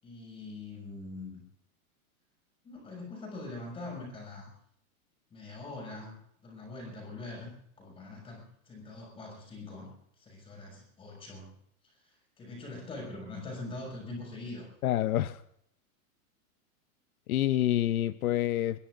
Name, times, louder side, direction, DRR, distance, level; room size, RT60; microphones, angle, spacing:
voice 1, 0.0-1.4 2.6-4.5 5.3-6.1 6.4-9.9 10.2-11.5 12.0-14.7, left 2 dB, 10° left, 6.3 m, -43 dB
voice 2, 14.8-15.4 17.3-18.8, left 13 dB, 75° left, 0.8 m, -27 dB
23.5 x 21.5 x 2.6 m
supercardioid pair, 175°, 43 cm